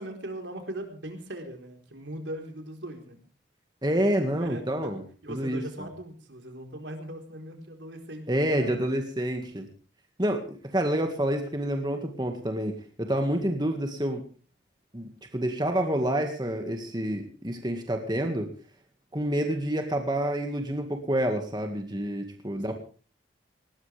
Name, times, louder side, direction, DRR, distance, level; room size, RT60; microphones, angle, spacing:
voice 1, 0.0-3.2 4.3-4.9 5.2-8.8 22.6-22.7, right 1 dB, 80° right, 4 dB, 4.3 m, -40 dB
voice 2, 3.8-5.0 5.3-5.6 8.3-9.7 10.2-14.2 14.9-18.5 19.1-22.7, right 1 dB, 25° right, 4 dB, 1.9 m, -28 dB
19.5 x 19.0 x 3.5 m, 0.37 s
head